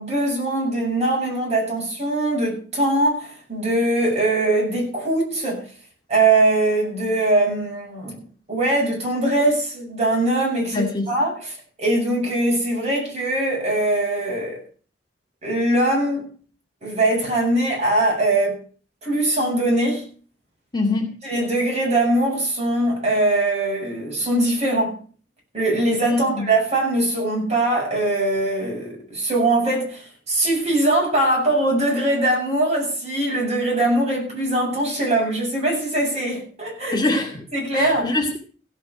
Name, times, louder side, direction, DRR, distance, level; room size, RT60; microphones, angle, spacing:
voice 1, 0.0-5.6 6.1-8.2 8.5-14.6 15.4-16.3 16.8-18.6 19.0-20.1 21.2-25.0 25.5-37.0 37.5-38.1, right 2 dB, 40° right, 8.0 m, -21 dB
voice 2, 10.7-11.1 20.7-21.1 26.1-26.4 36.9-37.4 37.7-38.4, left 2 dB, 25° left, 2.3 m, -23 dB
16.0 x 8.5 x 6.0 m
head